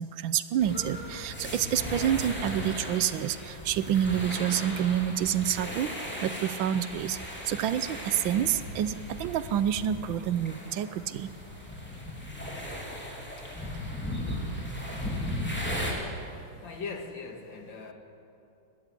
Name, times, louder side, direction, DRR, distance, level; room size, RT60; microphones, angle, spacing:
voice 1, 0.0-5.9 6.2-7.2 7.5-11.3, right 10 dB, 80° right, 1.5 m, -28 dB
sound 1, 0.6-15.9, equal, 5° left, 3.3 m, -37 dB
voice 2, 16.6-17.9, left 4 dB, 70° left, 2.6 m, -39 dB
20.5 x 14.5 x 9.7 m
omnidirectional pair, 2.2 m